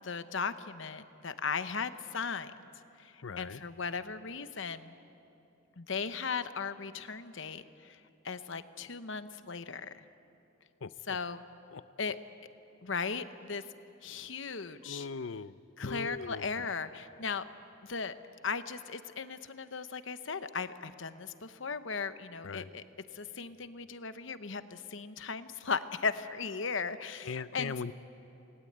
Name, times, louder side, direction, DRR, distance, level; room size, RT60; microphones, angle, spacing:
voice 1, 0.0-2.5 3.0-5.0 5.8-10.1 11.1-11.4 12.0-12.2 12.8-13.7 14.0-15.1 15.8-17.4 17.8-18.1 18.4-22.8 23.1-27.7, left 5 dB, 65° left, 11 dB, 1.0 m, -37 dB
voice 2, 3.2-3.6 10.8-11.2 11.7-11.9 14.8-16.7 22.4-22.7 27.2-27.9, left 4 dB, 85° left, 16 dB, 0.6 m, -40 dB
28.5 x 20.0 x 8.8 m, 2.9 s
head